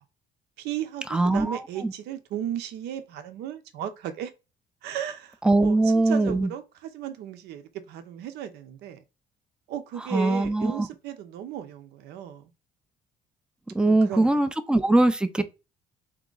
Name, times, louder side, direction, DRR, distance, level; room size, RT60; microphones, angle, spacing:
voice 1, 0.6-4.3 4.8-5.4 5.6-9.0 9.7-12.4 13.8-14.3, right 10 dB, 80° right, 0.7 m, -35 dB
voice 2, 1.1-1.9 5.4-6.5 10.1-10.9 13.7-15.4, right 2 dB, 5° right, 0.4 m, -22 dB
3.6 x 2.9 x 3.8 m
cardioid pair, 110°, 17 cm